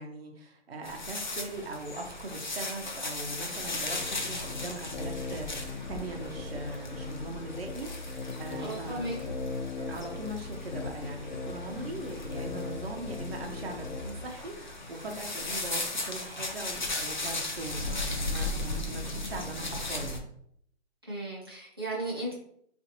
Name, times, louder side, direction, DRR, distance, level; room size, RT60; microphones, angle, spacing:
voice 1, 0.0-9.1 9.8-20.2, right 2 dB, 60° right, 2 dB, 0.7 m, -40 dB
sound 1, 0.8-20.2, left 2 dB, 45° left, 0.4 m, -37 dB
sound 2, 3.5-14.3, left 3 dB, 75° left, 0.7 m, -39 dB
voice 2, 8.6-9.1 21.1-22.3, right 1 dB, 20° right, -7 dB, 0.7 m, -35 dB
3.7 x 2.5 x 2.8 m, 0.68 s
hypercardioid pair, 180°, 34 cm